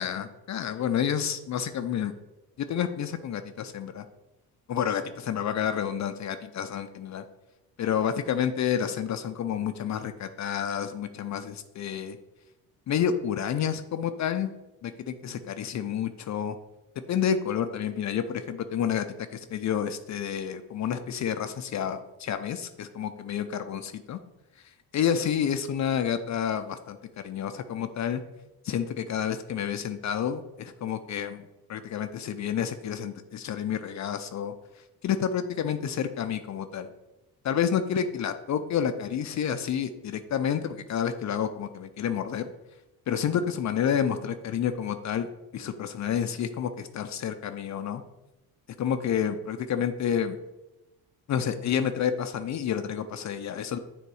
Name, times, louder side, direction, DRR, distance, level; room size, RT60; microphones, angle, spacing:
voice 1, 0.0-2.1 2.6-4.0 4.7-7.2 7.8-12.2 12.9-14.5 14.8-16.6 17.1-19.1 19.3-24.2 24.9-27.0 27.2-28.2 28.6-34.5 35.0-36.9 37.4-42.5 43.1-48.0 48.8-50.4 51.3-53.8, left 8 dB, 45° left, 10 dB, 0.5 m, -29 dB
6.8 x 3.5 x 4.8 m, 0.99 s
cardioid pair, 90°, 39 cm